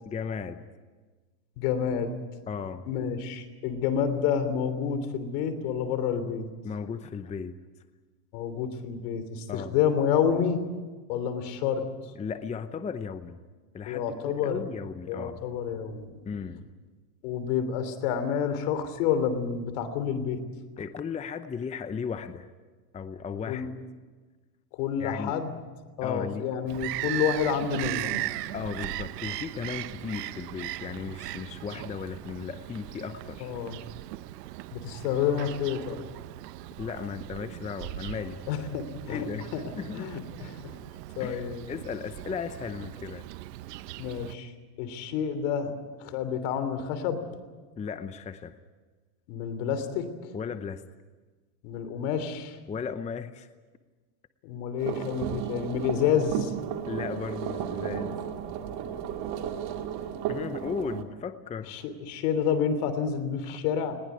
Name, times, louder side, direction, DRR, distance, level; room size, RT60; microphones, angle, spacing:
voice 1, 0.0-0.6 2.5-2.9 6.6-7.6 9.5-9.8 12.1-13.4 13.7-15.4 16.2-16.6 20.8-22.5 22.9-23.7 25.0-25.4 26.0-26.5 28.5-33.5 36.8-38.4 39.1-40.1 41.2-43.3 47.8-48.5 50.3-50.8 52.7-53.5 56.9-58.2 60.3-61.8 63.5-63.6, left 6 dB, 15° left, 11 dB, 0.7 m, -36 dB
voice 2, 1.6-2.1 2.9-6.4 8.3-10.6 11.1-11.8 13.9-14.7 15.1-16.1 17.2-20.4 23.5-23.7 24.7-25.5 26.0-28.3 33.4-33.8 34.7-36.0 38.5-39.6 39.9-40.8 41.2-41.7 44.0-44.5 44.8-45.7 46.0-47.2 49.3-50.1 51.6-52.6 54.4-56.5 61.7-64.0, left 7 dB, 70° left, 11 dB, 3.3 m, -29 dB
Bird vocalization bird call bird song, 26.7-44.3, right 16 dB, 85° right, 1.0 m, -38 dB
sound 1, 54.8-61.0, right 9 dB, 55° right, 2.3 m, -34 dB
20.5 x 20.0 x 9.5 m, 1.3 s
supercardioid pair, 125°, 47 cm